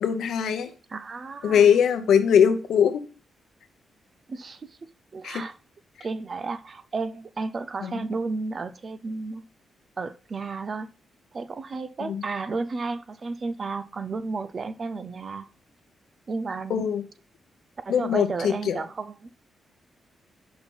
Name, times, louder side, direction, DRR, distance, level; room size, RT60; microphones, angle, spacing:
voice 1, 0.0-0.7 1.4-3.0 5.2-5.4 7.8-8.0 12.0-12.2 16.7-17.0 17.9-18.8, left 8 dB, 80° left, 9 dB, 0.8 m, -21 dB
voice 2, 0.9-1.8 4.3-4.8 5.1-5.6 6.0-9.5 10.0-10.9 11.3-15.5 16.3-16.9 17.9-19.3, right 4 dB, 35° right, 12 dB, 0.5 m, -33 dB
5.7 x 4.4 x 5.4 m, 0.37 s
cardioid pair, 125°, 0 cm